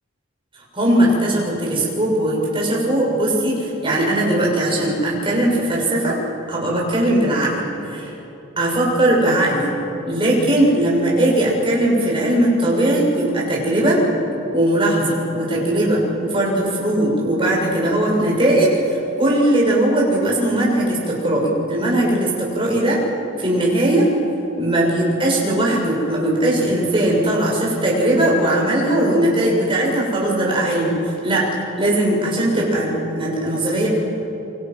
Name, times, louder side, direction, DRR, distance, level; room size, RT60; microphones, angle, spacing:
voice 1, 0.7-6.2 6.5-7.6 7.9-8.1 8.6-9.8 10.0-14.0 14.5-23.0 23.4-24.1 24.6-31.0 31.2-31.5 31.8-33.9, right 1 dB, 25° right, -3 dB, 7.0 m, -19 dB
28.0 x 25.0 x 6.3 m, 2.9 s
head